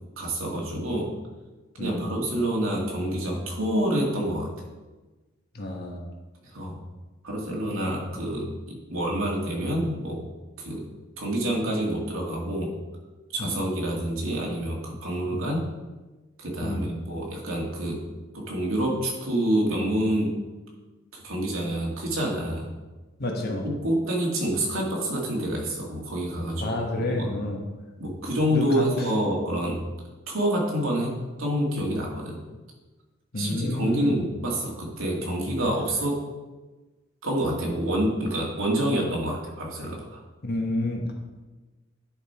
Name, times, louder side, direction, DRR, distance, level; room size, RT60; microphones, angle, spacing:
voice 1, 0.2-1.1 1.8-4.5 6.5-6.8 7.2-10.2 10.6-10.8 11.2-12.7 13.3-15.6 16.4-18.0 18.3-20.3 21.1-22.7 23.4-27.3 28.0-29.8 30.3-31.1 31.4-32.4 33.3-36.2 37.2-40.2, right 1 dB, 70° right, -2 dB, 2.2 m, -27 dB
voice 2, 5.5-6.0 13.4-13.6 15.3-15.5 16.6-17.0 23.2-23.7 26.6-27.6 28.5-28.9 33.3-34.2 40.4-41.1, left 1 dB, 50° left, 1 dB, 1.3 m, -29 dB
10.5 x 5.3 x 4.4 m, 1.2 s
head